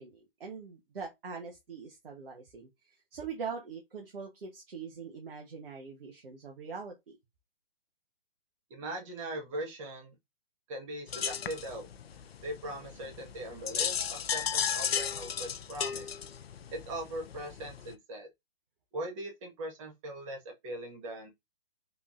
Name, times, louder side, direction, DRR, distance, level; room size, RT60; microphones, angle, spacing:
voice 1, 0.0-7.2, right 5 dB, 65° right, 1.0 m, -43 dB
voice 2, 8.7-10.2 10.7-11.9 12.4-16.1 16.7-18.3 18.9-21.3, right 1 dB, 30° right, 1.3 m, -40 dB
sound 1, 11.1-18.0, left 8 dB, 75° left, 0.5 m, -35 dB
3.5 x 3.2 x 2.4 m
figure-of-eight pair, 130°, 30 cm